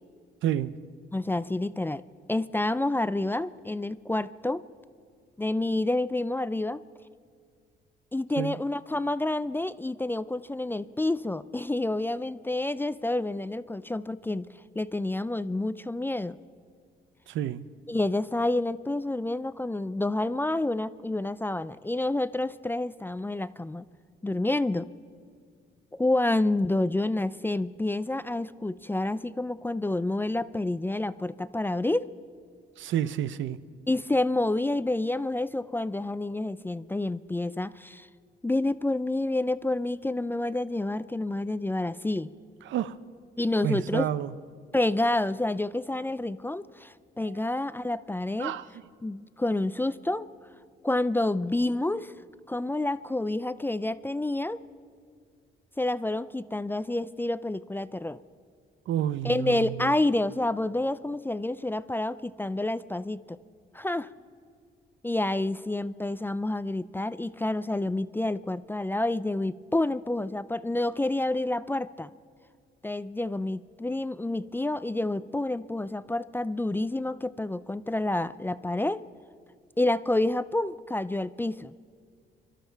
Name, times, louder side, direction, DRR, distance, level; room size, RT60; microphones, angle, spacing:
voice 1, 0.4-0.7 8.4-8.6 17.3-17.6 32.8-33.6 42.7-42.9 43.6-44.3 48.4-48.6 58.9-59.9, right 11 dB, 75° right, 15 dB, 0.6 m, -29 dB
voice 2, 1.1-2.0 2.3-4.6 5.4-6.8 8.1-14.5 14.8-16.4 17.9-23.8 24.2-24.9 25.9-32.1 33.9-38.1 38.4-42.3 43.4-44.1 44.7-48.5 49.0-50.3 50.8-52.1 52.5-54.6 55.8-58.2 59.2-63.4 63.7-64.1 65.0-72.1 72.8-79.0 79.8-81.7, left 2 dB, 10° left, 15 dB, 0.4 m, -28 dB
24.5 x 12.5 x 4.5 m, 2.1 s
cardioid pair, 90°, 20 cm